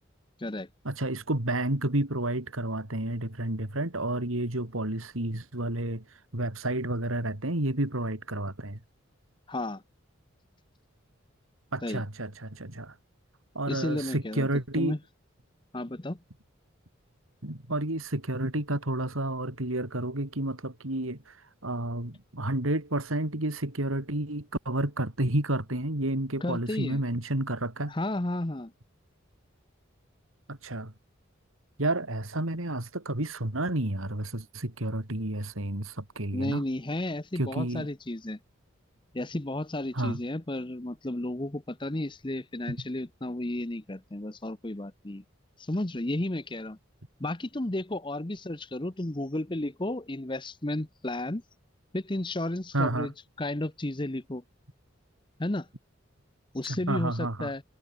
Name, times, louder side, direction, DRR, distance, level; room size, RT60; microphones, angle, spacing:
voice 1, 0.9-6.0 6.3-8.8 11.7-12.9 13.6-14.9 17.4-21.3 21.6-27.9 30.5-30.9 31.8-36.6 37.4-37.9 39.9-40.2 52.7-53.1 56.7-57.5, right 1 dB, 85° right, 3.3 m, -30 dB
voice 2, 9.5-9.8 11.8-12.0 13.7-14.5 14.8-15.0 15.7-16.2 26.4-27.0 27.9-28.7 36.3-38.4 39.1-45.2 45.6-46.8 47.2-51.4 51.9-54.4 55.4-55.7 56.5-57.6, left 1 dB, 25° left, 0.9 m, -33 dB
head